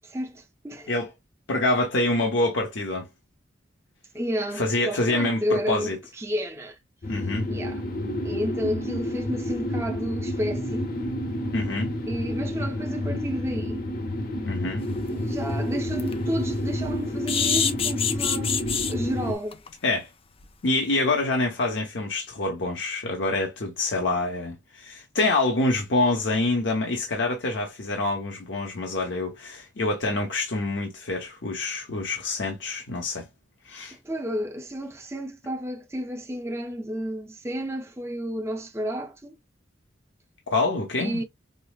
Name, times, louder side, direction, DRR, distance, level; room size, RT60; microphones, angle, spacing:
voice 1, 0.0-0.9 4.1-6.8 7.5-7.8 8.2-10.9 12.1-13.9 15.1-19.6 34.0-39.4 41.0-41.2, equal, 15° right, 0.6 m, -31 dB
voice 2, 1.5-3.1 4.6-6.0 7.1-7.5 11.5-11.9 14.5-14.8 19.8-20.1 20.6-33.3 33.7-34.0 40.5-41.2, left 2 dB, 75° left, 0.9 m, -26 dB
sound 1, 7.0-19.4, left 1 dB, 50° left, 0.8 m, -30 dB
sound 2, 15.0-15.1 15.5-15.6 15.9-16.1 17.3-18.9 19.5-19.7 20.0-20.1 20.4-20.5, left 7 dB, 30° left, 0.4 m, -25 dB
5.3 x 2.0 x 2.3 m
head